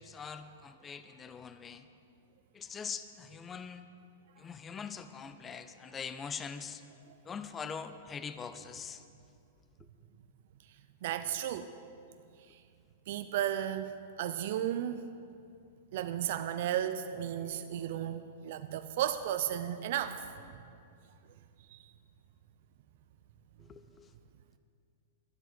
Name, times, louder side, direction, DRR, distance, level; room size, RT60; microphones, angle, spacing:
voice 1, 0.0-1.9 2.5-3.8 4.4-6.8 7.3-9.0 23.6-24.1, left 6 dB, 15° left, 11 dB, 0.4 m, -43 dB
voice 2, 11.0-11.7 13.1-13.9 14.2-15.0 15.9-20.2 21.7-21.8, right 11 dB, 50° right, 9 dB, 0.5 m, -34 dB
12.5 x 8.2 x 8.2 m, 2.4 s
supercardioid pair, 160°, 0 cm